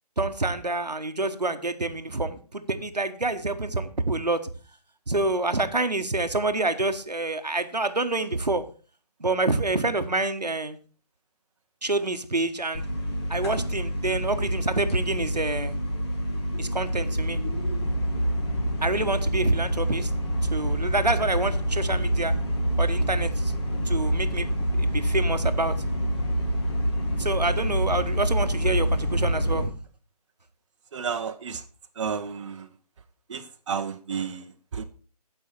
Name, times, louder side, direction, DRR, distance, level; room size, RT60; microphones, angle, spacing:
voice 1, 0.2-4.4 5.1-8.6 9.2-10.8 11.8-12.8 13.3-15.7 16.6-17.4 18.8-20.1 20.5-22.3 22.8-23.5 23.9-24.5 24.8-25.7 27.2-29.7, right 2 dB, 90° right, 8 dB, 1.2 m, -27 dB
sound 1, 12.7-29.6, equal, 40° left, 2.3 m, -26 dB
voice 2, 30.9-31.6 32.0-32.7 33.3-34.8, right 6 dB, 50° right, 6 dB, 0.8 m, -32 dB
14.5 x 5.5 x 4.4 m, 0.38 s
figure-of-eight pair, 145°, 20 cm